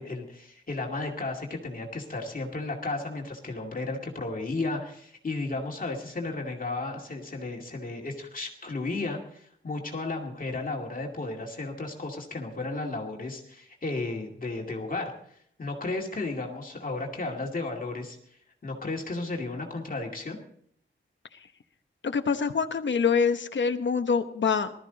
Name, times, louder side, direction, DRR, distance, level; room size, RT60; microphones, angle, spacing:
voice 1, 0.0-20.4, left 3 dB, 45° left, 0 dB, 2.4 m, -34 dB
voice 2, 22.0-24.7, left 5 dB, 65° left, 8 dB, 1.1 m, -25 dB
20.0 x 13.0 x 4.0 m, 0.66 s
wide cardioid pair, 135°, 20 cm